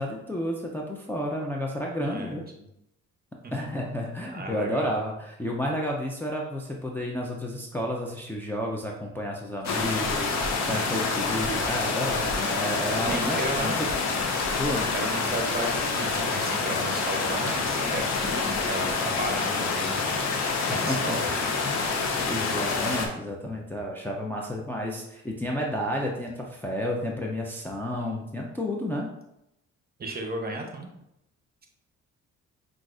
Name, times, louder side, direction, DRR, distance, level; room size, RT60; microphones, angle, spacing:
voice 1, 0.0-2.5 3.5-13.9 14.6-14.9 20.7-21.2 21.6-22.0 22.3-29.1, equal, 5° left, -2 dB, 0.5 m, -31 dB
voice 2, 2.1-2.7 3.4-3.5 4.3-4.9 9.6-10.9 13.0-13.8 14.9-21.6 30.0-30.9, right 2 dB, 30° right, 3 dB, 0.8 m, -35 dB
sound 1, 9.6-23.1, left 4 dB, 60° left, 0.7 m, -27 dB
5.8 x 2.5 x 2.4 m, 0.84 s
cardioid pair, 90°, 30 cm